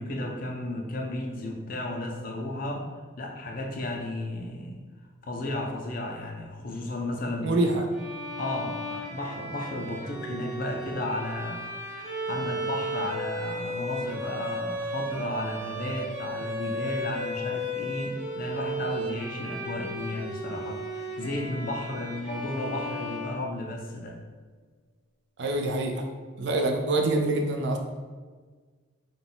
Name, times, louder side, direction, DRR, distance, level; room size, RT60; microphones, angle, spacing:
voice 1, 0.0-2.9 3.2-4.9 5.2-7.8 8.4-24.2, left 1 dB, 45° left, 1 dB, 0.5 m, -34 dB
voice 2, 7.4-7.8 25.4-25.9 26.4-27.8, right 2 dB, 60° right, 4 dB, 0.4 m, -25 dB
Bowed string instrument, 7.9-23.9, equal, 35° right, 1.3 m, -35 dB
3.9 x 2.3 x 3.8 m, 1.4 s
head